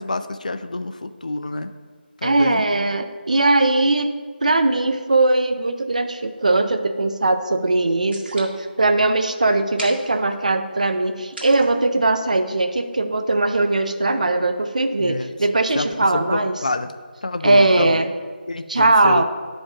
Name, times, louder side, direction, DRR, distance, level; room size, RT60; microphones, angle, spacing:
voice 1, 0.0-1.7 2.2-2.6 15.0-15.3 15.7-15.9 16.1-16.9 17.2-18.0 18.5-19.2, left 2 dB, 45° left, 10 dB, 0.4 m, -27 dB
voice 2, 2.2-16.6 17.4-18.1 18.7-19.2, right 2 dB, 45° right, 8 dB, 0.5 m, -20 dB
sound 1, 6.0-12.6, right 1 dB, 70° right, 1.9 m, -43 dB
9.8 x 5.1 x 3.7 m, 1.5 s
figure-of-eight pair, 180°, 6 cm